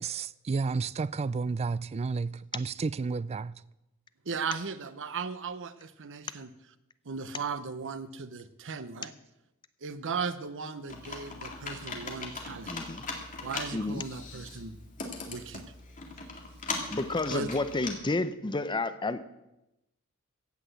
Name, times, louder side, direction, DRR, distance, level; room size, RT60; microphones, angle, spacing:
voice 1, 0.0-3.6, right 4 dB, 30° right, 0.3 m, -31 dB
voice 2, 4.3-6.5 7.1-9.1 9.8-12.7 13.4-14.8 15.3-15.6 17.3-17.5, right 5 dB, 60° right, 0.8 m, -37 dB
Computer keyboard, 10.9-17.9, left 3 dB, 35° left, 2.3 m, -40 dB
voice 3, 12.7-13.0 13.7-14.0 16.9-19.2, left 2 dB, 20° left, 0.6 m, -30 dB
16.0 x 6.0 x 8.1 m
head